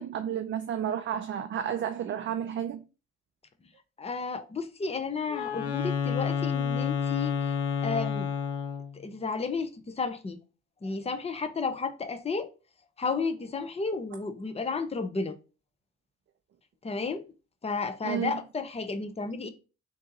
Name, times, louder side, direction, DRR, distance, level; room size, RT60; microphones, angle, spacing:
voice 1, 0.0-2.8 18.0-18.3, right 9 dB, 40° right, 0.5 m, -31 dB
voice 2, 4.0-7.5 7.8-8.3 8.9-10.4 10.8-12.5 13.0-15.4 16.8-17.3 17.6-19.5, left 4 dB, 20° left, 0.6 m, -32 dB
Wind instrument woodwind instrument, 5.3-9.0, left 7 dB, 80° left, 0.7 m, -29 dB
3.6 x 2.6 x 4.0 m
hypercardioid pair, 45°, 31 cm